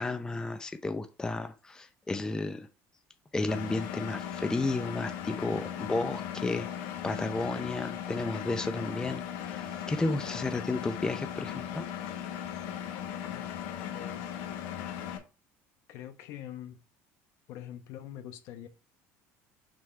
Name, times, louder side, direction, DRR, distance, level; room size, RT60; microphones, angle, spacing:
voice 1, 0.0-2.7 3.3-11.9, left 2 dB, 10° left, 0.6 m, -33 dB
Engine, 3.5-15.2, left 10 dB, 85° left, 1.3 m, -37 dB
voice 2, 13.9-14.3 15.9-16.8 17.5-18.7, left 11 dB, 65° left, 1.0 m, -44 dB
6.2 x 3.6 x 4.5 m
cardioid pair, 125°, 6 cm